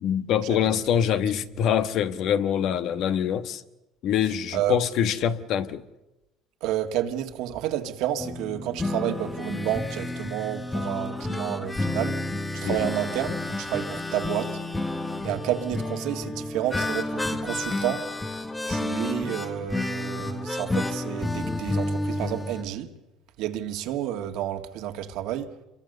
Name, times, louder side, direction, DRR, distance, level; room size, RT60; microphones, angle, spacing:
voice 1, 0.0-3.6 4.0-5.9 12.6-12.8, left 9 dB, 60° left, 1.3 m, -24 dB
voice 2, 4.5-4.8 6.6-12.3 12.5-14.6 15.2-18.1 18.7-22.9 23.4-25.6, right 11 dB, 75° right, 1.9 m, -30 dB
sound 1, 8.2-22.6, left 2 dB, 10° left, 1.3 m, -30 dB
27.0 x 23.0 x 6.7 m
cardioid pair, 110°, 0 cm